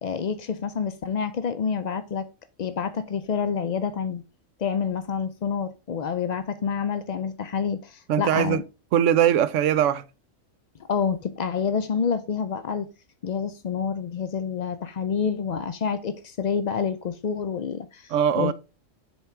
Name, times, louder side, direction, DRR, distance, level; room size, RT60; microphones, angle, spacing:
voice 1, 0.0-2.3 2.6-4.2 4.6-8.6 10.9-12.9 13.2-18.5, left 6 dB, 85° left, 0.3 m, -28 dB
voice 2, 8.1-8.6 8.9-10.0 18.1-18.5, right 9 dB, 70° right, 0.9 m, -21 dB
7.0 x 3.7 x 4.4 m
omnidirectional pair, 1.4 m